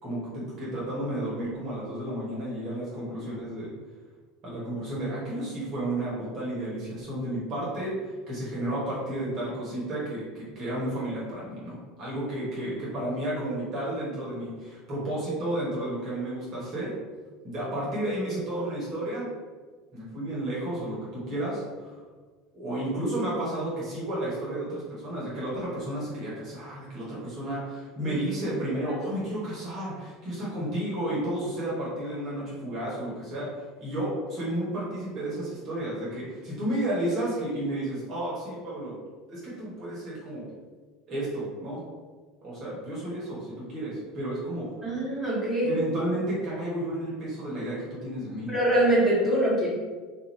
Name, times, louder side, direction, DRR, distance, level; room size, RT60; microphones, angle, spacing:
voice 1, 0.0-3.7 4.5-16.9 17.4-19.3 19.9-22.0 22.5-33.5 33.8-38.9 39.3-40.4 41.1-41.8 42.4-44.7 45.6-48.5, right 1 dB, 45° right, -7 dB, 1.2 m, -32 dB
voice 2, 44.8-45.7 48.5-49.7, right 1 dB, 10° right, -8 dB, 1.4 m, -24 dB
2.6 x 2.5 x 3.2 m, 1.4 s
hypercardioid pair, 75°, 0 cm